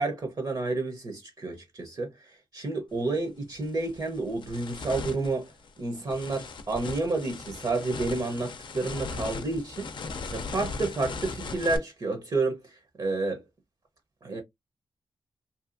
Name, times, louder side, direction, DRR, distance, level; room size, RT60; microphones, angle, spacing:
voice 1, 0.0-5.5 5.8-9.9 10.3-12.7 13.0-13.4 14.2-14.4, right 3 dB, 50° right, 0.8 m, -30 dB
sound 1, 2.9-3.1 3.6-11.8, left 4 dB, 65° left, 0.5 m, -38 dB
2.7 x 2.3 x 2.5 m
cardioid pair, 70°, 9 cm